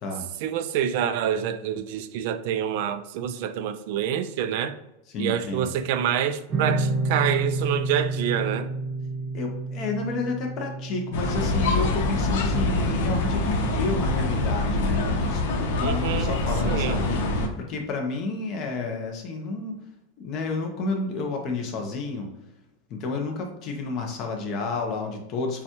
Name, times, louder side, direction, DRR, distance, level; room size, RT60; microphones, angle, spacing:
voice 1, 0.4-4.8 5.2-8.7 15.8-16.3 16.6-17.0, right 9 dB, 50° right, 0.4 m, -27 dB
voice 2, 5.1-5.7 9.3-19.9 20.2-22.3 22.9-25.6, left 3 dB, 30° left, 0.7 m, -30 dB
sound 1, 6.5-13.7, right 3 dB, 20° right, 0.9 m, -30 dB
sound 2, 11.1-17.5, left 2 dB, 70° left, 1.0 m, -25 dB
6.8 x 2.3 x 2.9 m
supercardioid pair, 175°, 0 cm